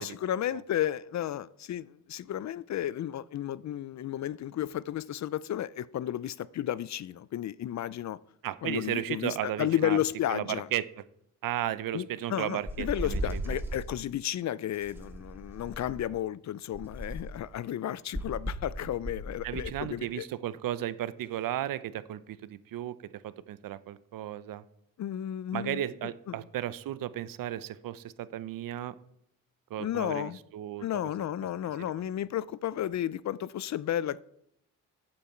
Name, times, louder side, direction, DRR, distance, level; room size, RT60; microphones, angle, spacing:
voice 1, 0.0-8.2 8.6-10.7 11.9-20.3 25.0-25.8 26.3-26.4 29.8-30.4 30.8-34.2, left 11 dB, 55° left, 0.5 m, -33 dB
voice 2, 8.4-10.0 10.3-11.0 11.4-13.6 19.4-24.6 25.5-28.9 29.7-31.1, right 12 dB, 70° right, 0.7 m, -35 dB
sound 1, 12.7-13.9 14.8-16.1 16.7-17.4 18.1-19.8, equal, 5° right, 1.9 m, -36 dB
14.5 x 8.7 x 4.4 m
cardioid pair, 95°, 35 cm